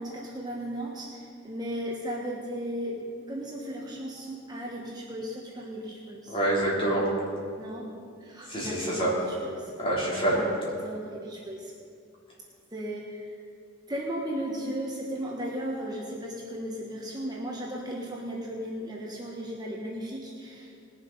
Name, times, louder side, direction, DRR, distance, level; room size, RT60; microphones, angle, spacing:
voice 1, 0.0-6.4 7.6-7.9 8.2-9.7 10.3-11.7 12.7-13.4 13.9-20.8, equal, 20° right, -3 dB, 1.2 m, -36 dB
voice 2, 6.3-7.1 8.5-9.1 9.8-10.4, right 1 dB, 25° left, -6 dB, 3.7 m, -26 dB
20.0 x 7.3 x 5.5 m, 2.4 s
head